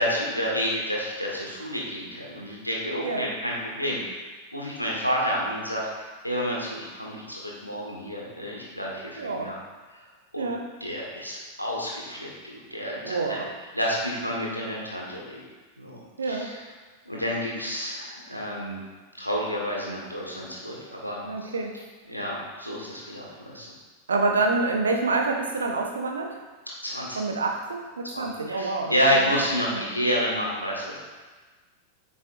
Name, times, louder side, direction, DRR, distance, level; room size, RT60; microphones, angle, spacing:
voice 1, 0.0-4.0 4.5-5.9 6.2-9.6 10.3-10.5 10.8-13.4 13.7-15.5 15.8-16.0 16.3-16.6 17.0-18.8 19.2-21.2 22.1-23.7 26.8-27.2 28.1-31.0, equal, 90° left, -3 dB, 1.5 m, -29 dB
voice 2, 9.2-9.5 10.4-10.6 13.0-13.5 16.2-16.5 21.2-21.7 23.2-23.3 24.1-26.3 27.2-29.3 29.7-29.9, right 3 dB, 70° right, 2 dB, 0.9 m, -27 dB
8.2 x 6.0 x 2.6 m, 1.3 s
figure-of-eight pair, 90°, 0 cm